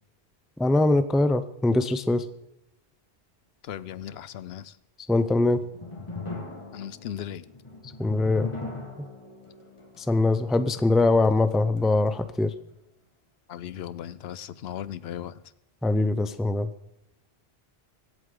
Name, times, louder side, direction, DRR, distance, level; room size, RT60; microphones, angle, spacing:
voice 1, 0.6-2.2 5.1-5.6 8.0-8.5 10.0-12.5 15.8-16.7, left 2 dB, ahead, 0.4 m, -22 dB
voice 2, 3.6-4.8 6.7-7.5 13.5-15.4, left 10 dB, 80° left, 0.9 m, -37 dB
sound 1, 5.6-12.5, left 2 dB, 30° left, 1.8 m, -41 dB
24.0 x 8.1 x 3.9 m
omnidirectional pair, 1.0 m